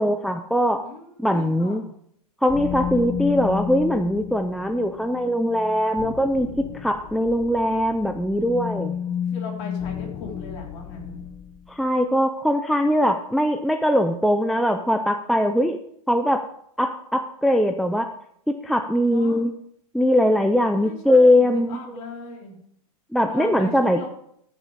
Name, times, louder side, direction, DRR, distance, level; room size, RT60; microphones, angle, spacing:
voice 1, 0.0-0.9 1.2-1.8 2.4-6.5 6.7-9.0 11.7-15.8 16.1-16.4 16.8-18.1 18.5-19.5 19.9-21.8 23.1-24.0, equal, ahead, 6 dB, 0.3 m, -21 dB
voice 2, 0.8-1.9 9.0-11.2 19.1-19.4 20.8-22.6 23.2-24.1, left 4 dB, 45° left, -1 dB, 3.6 m, -38 dB
sound 1, 2.5-11.7, left 8 dB, 20° left, 0.8 m, -32 dB
13.5 x 6.3 x 5.1 m, 0.70 s
hypercardioid pair, 145°, 19 cm